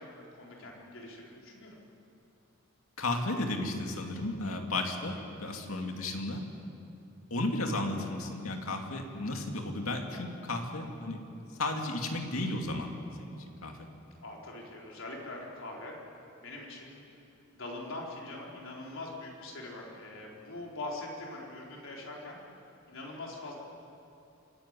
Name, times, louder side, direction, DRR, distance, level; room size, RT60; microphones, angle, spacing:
voice 1, 0.0-1.8 5.2-5.3 14.2-15.9 16.4-17.0 17.5-22.4 22.9-23.5, left 2 dB, 70° left, -2 dB, 4.2 m, -43 dB
voice 2, 3.0-6.5 7.3-11.2 11.6-12.9 13.2-13.8, left 2 dB, 90° left, 3 dB, 2.4 m, -34 dB
26.5 x 11.5 x 9.8 m, 2.8 s
head